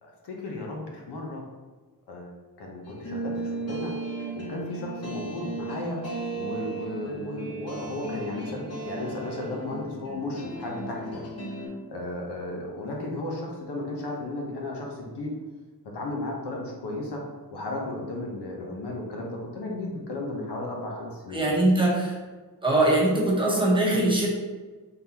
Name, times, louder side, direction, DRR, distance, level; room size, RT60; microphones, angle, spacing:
voice 1, 0.0-1.4 2.1-3.9 4.3-6.0 6.3-11.2 11.6-15.3 15.8-17.2 17.5-21.4, left 2 dB, 85° left, -1 dB, 1.0 m, -34 dB
sound 1, 2.8-11.7, right 2 dB, 40° left, 0.9 m, -35 dB
voice 2, 21.3-22.2 22.6-24.3, right 1 dB, 15° right, -4 dB, 0.9 m, -22 dB
4.0 x 3.6 x 2.9 m, 1.3 s
wide cardioid pair, 150°, 39 cm